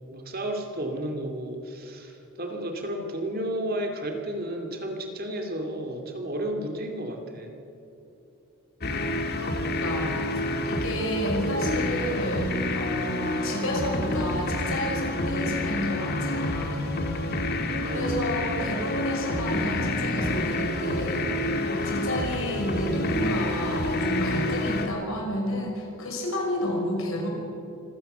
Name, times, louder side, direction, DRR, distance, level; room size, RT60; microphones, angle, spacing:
voice 1, 0.1-7.5 17.8-18.1, right 1 dB, 45° right, 3 dB, 2.5 m, -32 dB
sound 1, 8.8-24.9, left 1 dB, 45° left, 2.1 m, -28 dB
voice 2, 9.4-16.9 17.2-17.3 17.8-27.3, equal, 65° left, 1 dB, 5.9 m, -31 dB
25.5 x 17.0 x 6.9 m, 2.9 s
head